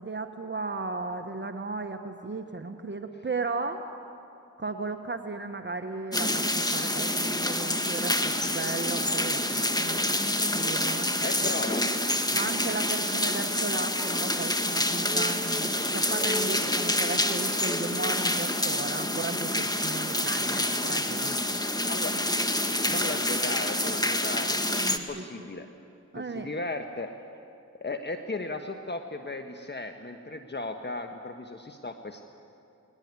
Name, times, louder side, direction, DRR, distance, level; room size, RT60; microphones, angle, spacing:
voice 1, 0.0-3.8 4.6-10.2 10.5-11.5 12.3-21.6 22.9-23.0 24.7-25.2 26.1-26.5, right 3 dB, 35° right, 6 dB, 1.3 m, -35 dB
sound 1, 6.1-25.0, left 1 dB, 10° left, 1.6 m, -27 dB
voice 2, 11.2-11.9 21.8-22.2 22.9-24.6 24.9-25.7 26.1-27.1 27.8-32.2, left 2 dB, 35° left, 6 dB, 1.3 m, -36 dB
20.5 x 18.5 x 9.6 m, 2.6 s
cardioid pair, 45°, 31 cm